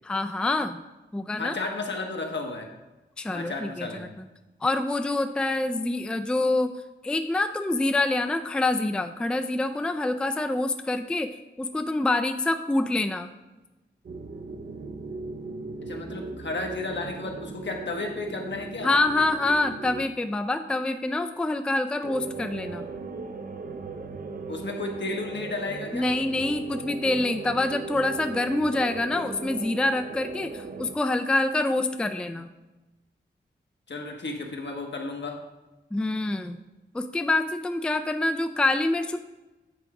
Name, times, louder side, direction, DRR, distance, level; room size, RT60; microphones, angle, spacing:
voice 1, 0.0-0.8 1.1-1.5 3.2-4.1 4.6-6.7 7.0-13.3 18.8-22.9 25.9-32.5 35.9-36.6 36.9-39.2, left 2 dB, 5° left, 7 dB, 0.3 m, -26 dB
voice 2, 1.4-2.7 3.3-4.1 15.8-18.9 24.5-26.1 33.9-35.4, left 3 dB, 70° left, 2 dB, 1.1 m, -33 dB
sound 1, 14.0-20.0 22.0-30.9, right 4 dB, 50° right, 0.5 m, -38 dB
8.4 x 3.5 x 4.8 m, 1.1 s
wide cardioid pair, 100°, 19 cm